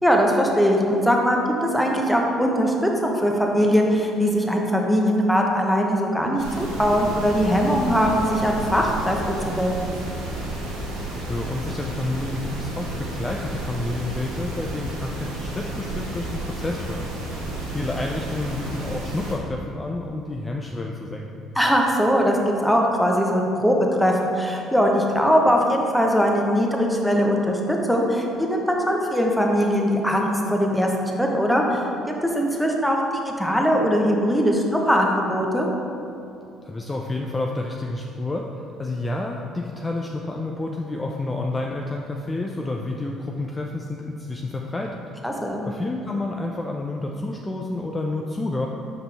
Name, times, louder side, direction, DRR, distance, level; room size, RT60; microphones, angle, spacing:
voice 1, 0.0-9.2 9.4-9.8 21.6-30.9 31.2-31.8 32.3-33.0 33.2-35.7 45.2-45.6, equal, ahead, 0 dB, 0.9 m, -21 dB
sound 1, 6.4-19.3, right 1 dB, 80° right, 1.0 m, -31 dB
voice 2, 11.2-17.0 17.7-21.3 36.6-38.5 38.8-45.0 45.6-48.7, left 2 dB, 20° left, 0 dB, 0.4 m, -29 dB
5.6 x 5.5 x 3.4 m, 2.6 s
figure-of-eight pair, 50°, 0 cm